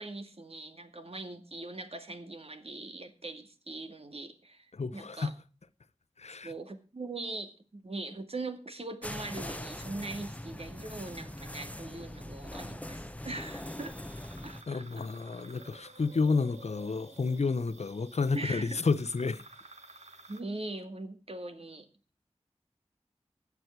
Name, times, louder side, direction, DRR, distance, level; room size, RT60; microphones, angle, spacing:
voice 1, 0.0-5.3 6.4-14.0 14.4-15.0 18.3-18.8 20.3-21.9, right 2 dB, 60° right, 2.2 m, -41 dB
voice 2, 4.7-5.3 6.2-6.5 14.7-19.4, left 4 dB, 75° left, 0.7 m, -30 dB
sound 1, 9.0-14.6, left 1 dB, 10° left, 0.9 m, -42 dB
sound 2, 13.3-20.4, right 2 dB, 90° right, 2.1 m, -53 dB
16.0 x 9.6 x 4.5 m
wide cardioid pair, 65°, 11 cm